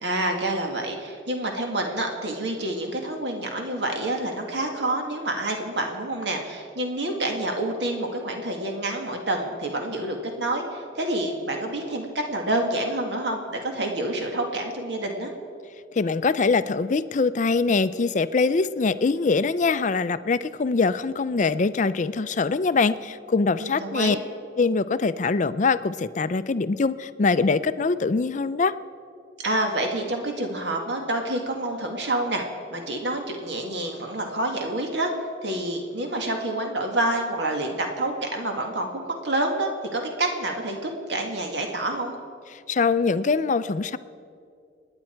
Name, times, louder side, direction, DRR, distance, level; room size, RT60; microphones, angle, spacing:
voice 1, 0.0-15.3 23.6-24.2 29.4-32.4 32.7-35.1 35.4-42.2, right 1 dB, 65° right, 2 dB, 2.0 m, -28 dB
voice 2, 15.9-24.2 24.6-28.7 42.7-44.0, left 4 dB, 40° left, 14 dB, 0.4 m, -23 dB
29.0 x 9.8 x 4.5 m, 2.4 s
head